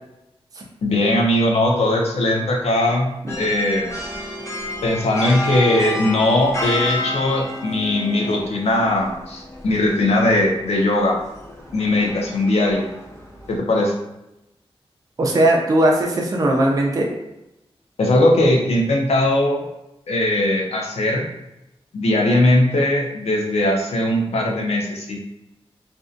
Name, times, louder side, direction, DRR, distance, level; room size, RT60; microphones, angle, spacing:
voice 1, 0.8-3.1 3.4-3.9 4.8-11.1 11.7-12.9 13.5-13.9 18.0-19.6 20.1-21.2 21.9-25.2, left 1 dB, 85° left, 0 dB, 0.5 m, -19 dB
sound 1, 3.3-13.6, left 1 dB, 30° left, 0.6 m, -31 dB
voice 2, 15.2-17.1, right 1 dB, 35° right, -1 dB, 0.4 m, -18 dB
2.6 x 2.1 x 2.4 m, 0.90 s
wide cardioid pair, 120°, 10 cm